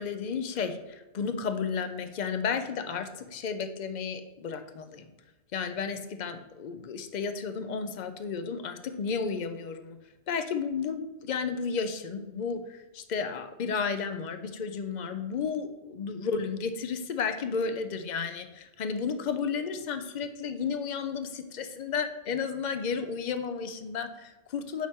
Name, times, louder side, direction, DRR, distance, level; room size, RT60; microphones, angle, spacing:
voice 1, 0.0-5.1 5.5-10.0 10.3-24.9, left 5 dB, 55° left, 8 dB, 0.5 m, -33 dB
7.3 x 4.3 x 3.5 m, 1.0 s
omnidirectional pair, 1.2 m